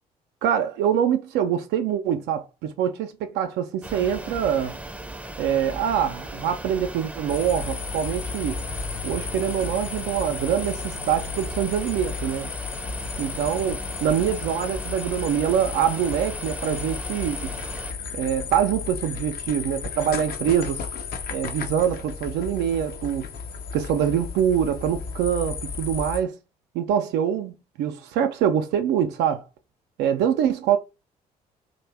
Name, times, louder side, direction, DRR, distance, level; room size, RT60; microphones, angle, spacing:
voice 1, 0.4-4.8 5.4-8.6 9.0-12.5 13.2-17.5 18.1-20.8 21.3-23.2 23.7-26.4 26.7-29.4 30.0-30.8, right 9 dB, 65° right, 0.4 m, -24 dB
sound 1, 3.8-17.9, right 1 dB, 5° right, 0.6 m, -37 dB
sound 2, 7.3-26.2, left 6 dB, 50° left, 0.6 m, -34 dB
2.6 x 2.1 x 3.2 m
figure-of-eight pair, 45°, 19 cm